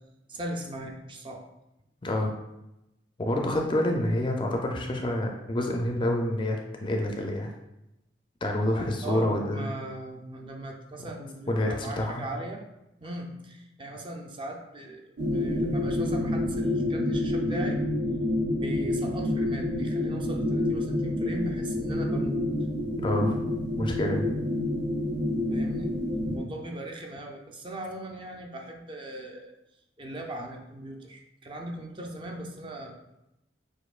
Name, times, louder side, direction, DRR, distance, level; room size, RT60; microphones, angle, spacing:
voice 1, 0.3-1.5 9.0-12.6 13.0-17.8 18.6-22.4 25.5-25.9 26.3-29.5 30.0-33.1, right 1 dB, 30° right, 1 dB, 0.5 m, -39 dB
voice 2, 3.2-7.5 8.4-9.7 11.5-12.2 23.0-23.4 23.8-24.3, left 1 dB, 25° left, 1 dB, 0.4 m, -27 dB
sound 1, 15.2-26.4, left 1 dB, 80° right, 0.7 m, -28 dB
6.3 x 2.6 x 2.4 m, 0.89 s
head